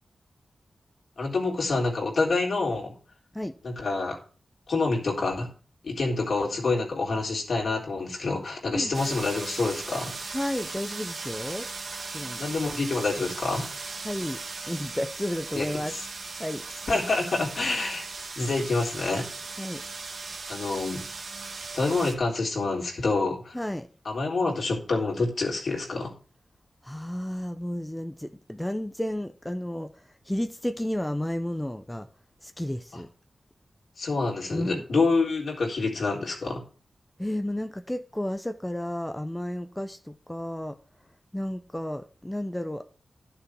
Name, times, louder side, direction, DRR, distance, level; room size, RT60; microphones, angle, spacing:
voice 1, 1.2-2.9 3.6-4.2 4.7-5.5 5.8-10.1 12.4-13.7 15.5-15.7 15.9-16.1 16.9-18.1 18.4-19.3 20.5-21.0 21.7-23.6 24.1-26.1 34.0-36.6, left 3 dB, 70° left, 3.7 m, -27 dB
sound 1, 8.9-22.1, right 4 dB, 70° right, 1.8 m, -38 dB
voice 2, 10.3-11.7 12.1-12.4 14.0-15.9 16.4-16.6 19.6-19.8 23.5-23.9 26.8-32.1 32.4-33.1 34.5-34.8 37.2-40.8 41.3-42.9, left 1 dB, 10° left, 0.8 m, -32 dB
12.0 x 6.9 x 4.6 m
wide cardioid pair, 75°, 0 cm